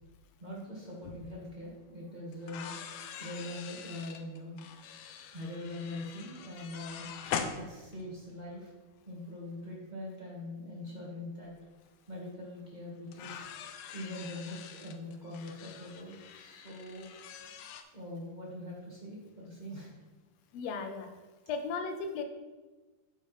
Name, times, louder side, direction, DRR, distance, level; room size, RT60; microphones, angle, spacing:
voice 1, 0.4-2.7 3.2-4.8 5.3-7.1 7.6-8.7 9.0-11.5 12.1-13.5 13.9-17.1 17.9-20.2, left 1 dB, 65° right, -5 dB, 0.4 m, -43 dB
sound 1, 1.1-1.2 2.3-8.3 9.6-9.7 11.4-11.5 11.9-12.0 13.1-17.8, left 7 dB, 90° left, 2.2 m, -43 dB
voice 2, 20.5-21.1 21.5-22.2, left 4 dB, 75° left, 5 dB, 1.6 m, -36 dB
9.9 x 6.6 x 3.2 m, 1.2 s
omnidirectional pair, 3.7 m